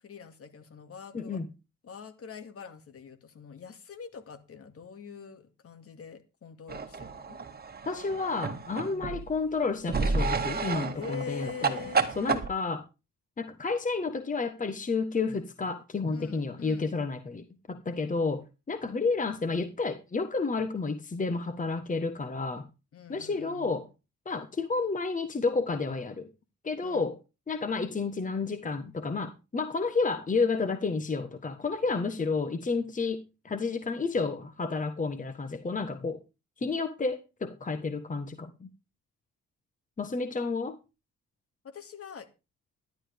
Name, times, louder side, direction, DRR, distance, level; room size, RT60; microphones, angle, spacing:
voice 1, 0.0-1.4 1.8-7.4 8.9-9.2 10.9-12.0 16.1-17.0 22.9-23.8 26.8-27.1 41.6-42.3, left 6 dB, 50° left, 2.3 m, -44 dB
voice 2, 1.1-1.5 7.9-11.8 12.1-12.8 13.4-22.7 23.1-23.9 24.2-26.3 26.6-27.2 27.5-36.2 36.6-38.7 40.0-40.8, left 4 dB, 25° left, 1.4 m, -31 dB
sound 1, 6.7-9.3 9.9-12.5, right 4 dB, 30° right, 2.0 m, -31 dB
13.0 x 12.0 x 3.6 m
cardioid pair, 90°, 30 cm